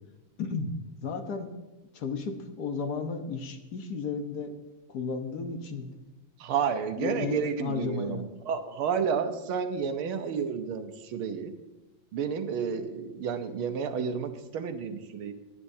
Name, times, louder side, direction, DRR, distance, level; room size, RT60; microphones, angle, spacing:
voice 1, 0.4-1.5 1.9-4.5 4.9-5.9 7.0-8.2, left 4 dB, 55° left, 6 dB, 1.4 m, -33 dB
voice 2, 6.4-11.5 12.1-15.3, right 6 dB, 85° right, 8 dB, 1.8 m, -31 dB
20.5 x 10.0 x 2.7 m, 1.1 s
omnidirectional pair, 2.2 m